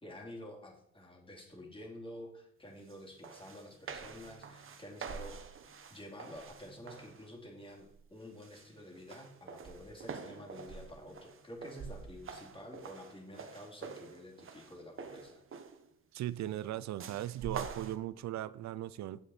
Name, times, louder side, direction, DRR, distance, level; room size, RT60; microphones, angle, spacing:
voice 1, 0.0-5.4 5.9-15.4, left 1 dB, 15° left, 0 dB, 2.6 m, -49 dB
sound 1, 2.9-3.0 3.2-7.3 7.7-8.1 8.4-15.9 17.0-18.0, right 5 dB, 45° right, 1.1 m, -47 dB
voice 2, 16.1-19.2, right 13 dB, 65° right, 17 dB, 0.5 m, -38 dB
8.8 x 7.6 x 4.2 m, 0.73 s
cardioid pair, 90°, 30 cm